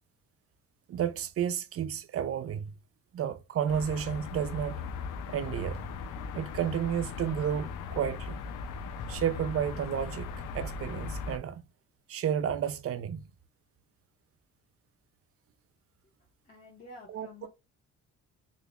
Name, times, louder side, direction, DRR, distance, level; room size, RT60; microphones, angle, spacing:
voice 1, 0.9-2.7 3.1-4.8 5.3-5.8 6.3-8.4 9.1-11.7 12.1-13.2 17.1-17.5, right 9 dB, 50° right, 0.5 m, -32 dB
sound 1, 3.7-11.4, left 5 dB, 90° left, 0.6 m, -38 dB
voice 2, 16.5-17.5, left 2 dB, 30° left, 1.2 m, -49 dB
3.6 x 3.2 x 2.4 m
cardioid pair, 90°, 30 cm